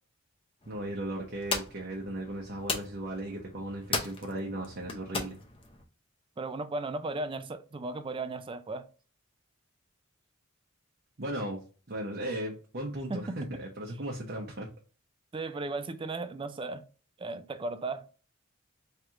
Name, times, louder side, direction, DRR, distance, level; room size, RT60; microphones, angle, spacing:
sound 1, 0.6-5.8, left 4 dB, 25° left, 0.7 m, -38 dB
voice 1, 0.7-5.4 11.2-11.6 11.9-14.7, right 1 dB, 50° right, 0.8 m, -36 dB
voice 2, 6.4-8.8 13.1-13.6 15.3-16.8 17.2-18.1, right 3 dB, 25° right, 0.4 m, -36 dB
3.2 x 3.0 x 3.6 m
head